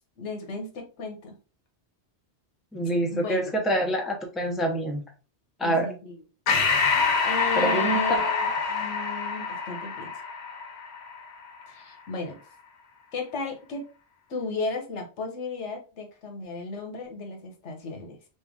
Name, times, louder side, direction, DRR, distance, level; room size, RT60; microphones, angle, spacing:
voice 1, 0.2-1.3 3.1-3.6 5.6-6.2 7.2-10.1 11.7-12.4 13.1-13.9 14.3-18.2, left 3 dB, 90° left, 3 dB, 1.2 m, -35 dB
voice 2, 2.7-5.0 5.6-5.9 7.5-8.0, right 1 dB, ahead, 2 dB, 0.5 m, -26 dB
Breathing, 6.5-11.3, left 5 dB, 70° left, 1.0 m, -26 dB
3.2 x 2.9 x 3.5 m, 0.35 s
omnidirectional pair, 1.2 m